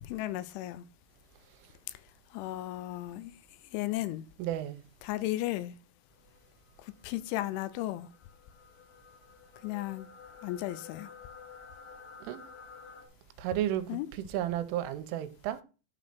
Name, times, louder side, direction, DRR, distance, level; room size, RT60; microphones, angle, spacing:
voice 1, 0.0-0.9 2.3-3.3 3.7-4.2 5.0-5.7 6.8-8.1 9.6-10.1 10.4-11.1 13.9-14.1, left 15 dB, 80° left, 3.0 m, -35 dB
voice 2, 4.4-4.8 12.2-12.4 13.4-14.0 14.3-15.6, right 12 dB, 90° right, 3.2 m, -32 dB
sound 1, 6.2-13.1, left 5 dB, 65° left, 3.1 m, -52 dB
11.5 x 4.1 x 5.9 m
omnidirectional pair, 5.7 m